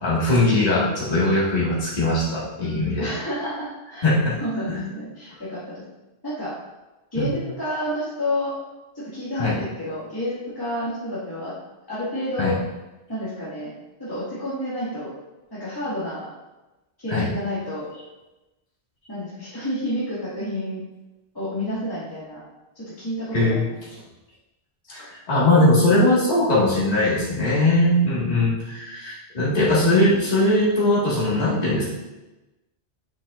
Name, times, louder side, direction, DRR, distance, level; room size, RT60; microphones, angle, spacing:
voice 1, 0.0-3.1 4.0-4.3 7.1-7.3 9.4-9.5 12.4-12.5 17.1-17.3 23.3-23.6 25.1-31.8, left 1 dB, 35° left, -8 dB, 1.8 m, -20 dB
voice 2, 3.0-4.1 4.4-5.8 6.2-6.5 7.1-8.5 8.9-11.5 11.9-12.6 13.1-13.7 14.0-15.1 15.5-16.3 17.0-17.9 19.1-20.8 21.3-22.4 22.8-23.7 24.9-25.1, left 1 dB, 20° left, -12 dB, 2.0 m, -30 dB
7.0 x 5.8 x 2.4 m, 1.0 s
omnidirectional pair, 1.2 m